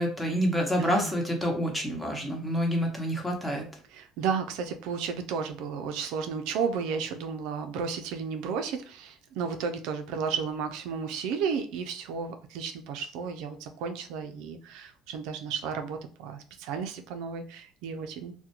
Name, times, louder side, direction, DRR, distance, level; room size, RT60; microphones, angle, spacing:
voice 1, 0.0-3.7, equal, 10° left, 1 dB, 0.8 m, -28 dB
voice 2, 0.8-1.1 3.9-18.3, right 6 dB, 80° right, 6 dB, 0.3 m, -33 dB
2.3 x 2.1 x 2.8 m, 0.42 s
cardioid pair, 105°, 0 cm